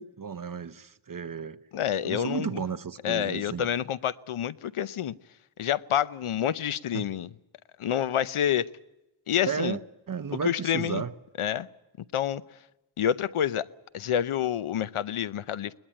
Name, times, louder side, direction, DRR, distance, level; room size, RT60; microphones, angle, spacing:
voice 1, 0.0-1.6 2.0-3.7 6.9-7.1 9.4-9.8 10.1-11.1, right 6 dB, 40° right, 11 dB, 1.0 m, -33 dB
voice 2, 1.7-2.6 3.0-5.2 5.6-7.3 7.8-8.7 9.3-9.8 10.4-11.0 11.4-11.7 12.1-12.4 13.0-13.7 13.9-15.8, left 10 dB, 80° left, 16 dB, 0.8 m, -28 dB
21.5 x 20.5 x 8.9 m, 0.98 s
wide cardioid pair, 110°, 49 cm